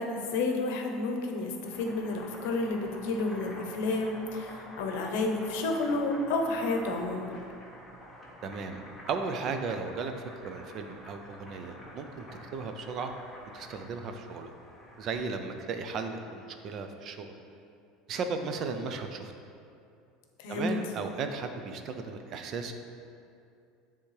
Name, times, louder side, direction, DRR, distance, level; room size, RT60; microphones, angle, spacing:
voice 1, 0.0-7.3 20.4-20.8, left 2 dB, 75° left, 3 dB, 0.8 m, -31 dB
Boiling, 1.5-15.3, left 1 dB, 5° left, 0.8 m, -48 dB
voice 2, 8.4-8.8 9.1-10.1 10.4-12.3 12.5-13.1 13.5-14.5 15.0-17.3 18.1-19.3 20.5-22.7, right 4 dB, 30° right, 6 dB, 0.4 m, -35 dB
9.9 x 3.5 x 3.2 m, 2.5 s
cardioid pair, 175°, 0 cm